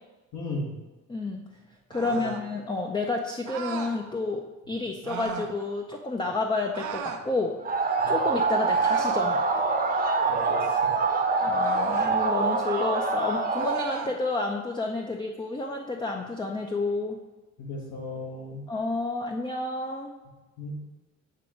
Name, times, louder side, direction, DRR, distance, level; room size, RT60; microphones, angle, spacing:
voice 1, 0.3-0.7 2.0-2.3 8.0-8.2 10.3-10.9 17.6-18.6 20.6-20.8, left 2 dB, 70° left, -1 dB, 1.4 m, -36 dB
voice 2, 1.1-1.5 1.9-7.6 8.1-9.4 11.4-17.2 18.7-20.1, left 3 dB, 15° left, 2 dB, 0.5 m, -30 dB
sound 1, 1.9-2.5 3.5-4.0 5.0-5.5 6.7-7.3 8.7-9.3 11.6-12.2 13.6-14.2, right 7 dB, 75° right, 0.7 m, -36 dB
sound 2, 7.6-13.8, right 4 dB, 30° right, 0.8 m, -25 dB
7.6 x 3.0 x 4.9 m, 1.2 s
cardioid pair, 90°, 30 cm